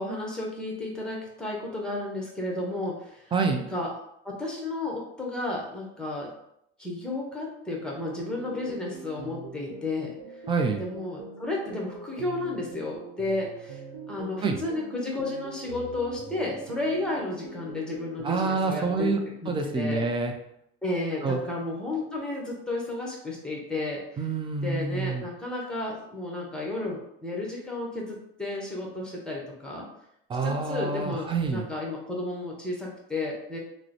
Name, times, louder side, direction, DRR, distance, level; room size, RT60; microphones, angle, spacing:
voice 1, 0.0-3.2 3.7-3.9 4.2-6.3 6.8-10.1 10.8-13.8 14.1-19.1 19.4-20.0 20.8-24.0 24.6-29.9 30.4-33.6, left 2 dB, 5° left, -2 dB, 0.8 m, -32 dB
voice 2, 3.3-3.6 10.5-10.8 14.4-14.6 18.2-19.2 19.5-20.3 21.2-21.4 24.2-25.2 30.3-31.7, right 4 dB, 15° right, 4 dB, 0.4 m, -27 dB
sound 1, 8.0-19.1, right 3 dB, 75° right, 0.8 m, -43 dB
3.0 x 2.0 x 3.9 m, 0.76 s
cardioid pair, 130°, 30 cm